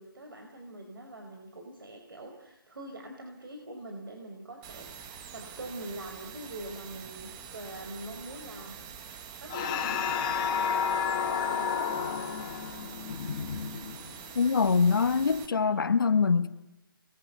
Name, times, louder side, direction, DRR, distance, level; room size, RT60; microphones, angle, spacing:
voice 1, 0.0-8.8 9.1-12.4, right 1 dB, 70° right, 4.8 m, -44 dB
sound 1, 4.6-15.5, right 7 dB, 15° right, 1.0 m, -46 dB
sound 2, 9.5-14.3, left 7 dB, 20° left, 1.9 m, -31 dB
voice 2, 14.3-16.5, left 5 dB, 65° left, 1.6 m, -24 dB
30.0 x 21.5 x 8.1 m
hypercardioid pair, 170°, 12 cm